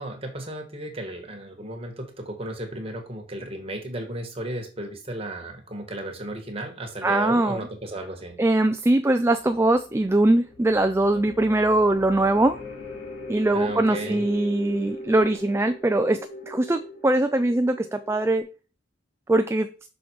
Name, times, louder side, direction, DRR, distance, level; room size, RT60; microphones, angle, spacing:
voice 1, 0.0-8.4 13.5-14.2, right 1 dB, 30° right, 2 dB, 1.7 m, -34 dB
voice 2, 7.0-7.7 8.4-12.6 13.3-16.2 16.5-18.5 19.3-19.7, right 2 dB, 15° right, 8 dB, 0.3 m, -21 dB
sound 1, 8.3-18.4, left 2 dB, 65° left, 2.9 m, -41 dB
6.2 x 5.7 x 4.7 m, 0.35 s
head